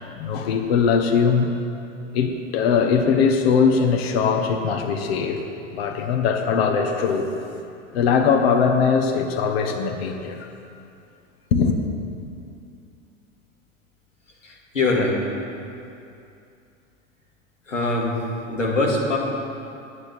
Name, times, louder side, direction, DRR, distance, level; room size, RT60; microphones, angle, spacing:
voice 1, 0.0-1.5 2.1-5.4 5.7-7.3 7.9-10.5 11.5-11.8, left 6 dB, 55° left, 4 dB, 1.4 m, -21 dB
voice 2, 14.4-15.3 17.7-18.2 18.5-19.2, left 2 dB, 80° left, -2 dB, 2.4 m, -22 dB
9.7 x 8.9 x 9.4 m, 2.6 s
figure-of-eight pair, 85°, 37 cm